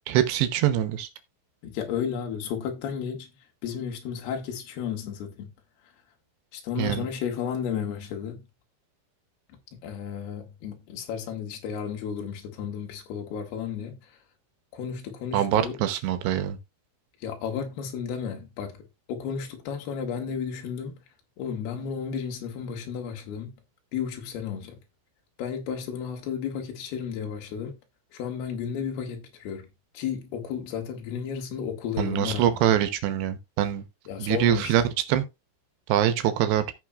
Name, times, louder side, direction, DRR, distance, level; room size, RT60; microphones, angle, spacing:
voice 1, 0.1-1.1 6.8-7.1 15.3-16.6 32.0-33.8 34.2-34.8 35.1-35.2 35.9-36.6, right 11 dB, 75° right, 2.9 m, -24 dB
voice 2, 1.6-3.3 3.6-5.5 6.5-8.4 9.7-14.2 14.7-15.8 17.2-21.0 21.4-23.5 23.9-24.8 25.4-27.8 28.1-29.7 29.9-32.6 34.1-34.9, left 7 dB, 65° left, 3.4 m, -33 dB
16.5 x 5.6 x 2.4 m
omnidirectional pair, 5.4 m